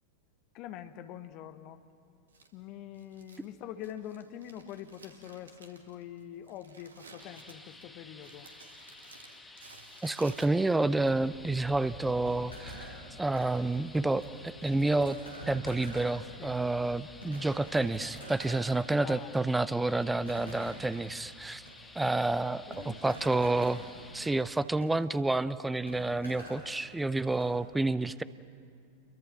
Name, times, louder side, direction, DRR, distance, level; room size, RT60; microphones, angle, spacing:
voice 1, 0.5-1.8 2.5-8.5 16.4-16.6 18.9-19.5 22.7-23.2, left 11 dB, 40° left, 10 dB, 1.2 m, -44 dB
Crumpling crinkling, 2.3-10.9, right 3 dB, 70° right, 2.2 m, -56 dB
sound 1, 7.2-24.4, left 3 dB, 10° left, 1.3 m, -53 dB
voice 2, 10.0-15.2 15.5-21.6 22.0-23.8 24.1-28.2, right 2 dB, 5° right, 16 dB, 0.6 m, -29 dB
sound 2, 10.2-27.5, equal, 80° left, 7.0 m, -48 dB
29.0 x 23.0 x 5.9 m, 2.4 s
figure-of-eight pair, 90°, 0 cm